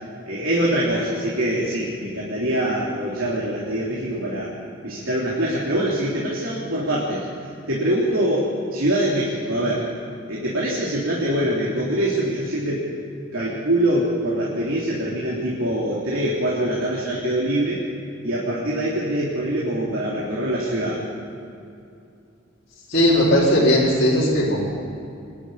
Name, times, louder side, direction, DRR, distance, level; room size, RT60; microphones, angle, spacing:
voice 1, 0.3-4.5 4.8-9.9 10.3-12.9 13.3-17.8 18.2-21.0, right 1 dB, 90° right, -5 dB, 3.5 m, -24 dB
voice 2, 22.9-24.7, equal, 50° left, -8 dB, 4.3 m, -17 dB
24.0 x 11.5 x 9.9 m, 2.6 s
head